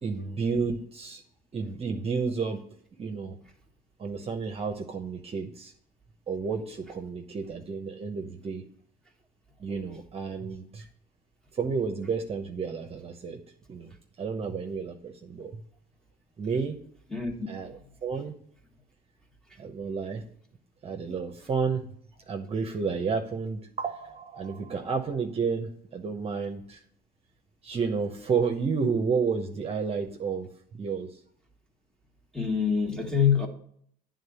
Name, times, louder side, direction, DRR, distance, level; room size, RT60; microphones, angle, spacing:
voice 1, 0.0-1.2 1.5-2.6 3.0-3.4 4.0-5.7 6.3-8.6 9.6-10.9 11.5-13.4 13.7-15.6 16.4-16.8 17.5-18.3 19.6-20.2 20.8-21.8 22.3-26.8 27.6-31.2, right 5 dB, 35° right, 4 dB, 1.0 m, -31 dB
voice 2, 32.3-33.5, left 7 dB, 5° left, 2 dB, 1.7 m, -25 dB
9.2 x 3.8 x 6.9 m, 0.63 s
cardioid pair, 110°, 17 cm